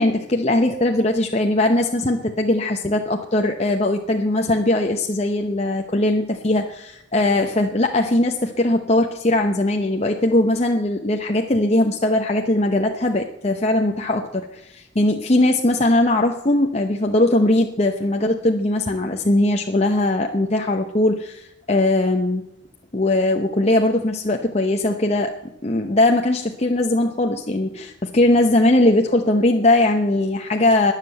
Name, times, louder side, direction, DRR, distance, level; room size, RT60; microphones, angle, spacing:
voice 1, 0.0-22.4 22.9-25.3 25.6-30.9, left 1 dB, 35° left, 3 dB, 0.8 m, -20 dB
20.5 x 7.6 x 7.7 m, 0.89 s
head